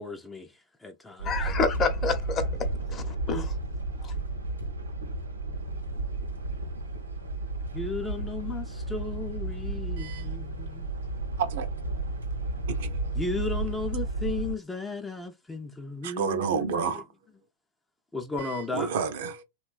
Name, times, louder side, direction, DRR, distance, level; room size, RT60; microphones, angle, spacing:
voice 1, 0.0-1.5 7.7-10.9 13.1-17.0 18.1-18.9, left 3 dB, 10° left, 0.4 m, -35 dB
voice 2, 1.2-3.5 4.0-4.1, left 4 dB, 30° left, 0.8 m, -29 dB
sound 1, 1.2-14.6, right 2 dB, 90° right, 0.7 m, -32 dB
voice 3, 10.0-10.3 11.4-11.7 12.7-13.1 16.0-17.0 18.4-19.4, right 6 dB, 60° right, 0.5 m, -30 dB
3.0 x 2.2 x 2.4 m
figure-of-eight pair, 100°, 0 cm